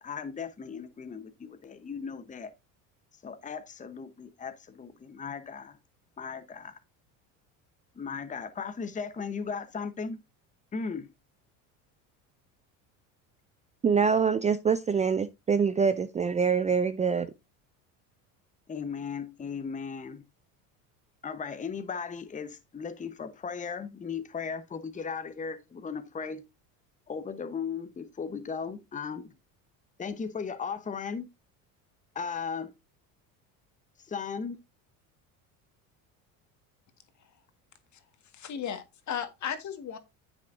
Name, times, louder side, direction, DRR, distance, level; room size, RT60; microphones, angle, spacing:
voice 1, 0.0-2.5 3.2-5.8 6.2-6.8 8.0-10.2 10.7-11.1 18.7-20.2 21.2-26.4 27.1-29.3 30.0-31.3 32.1-32.7 34.1-34.6, left 5 dB, 20° left, 1.0 m, -36 dB
voice 2, 13.8-17.3, right 6 dB, 20° right, 0.4 m, -25 dB
voice 3, 38.3-40.0, left 8 dB, 45° left, 1.8 m, -35 dB
9.8 x 7.4 x 2.6 m
supercardioid pair, 100°, 39 cm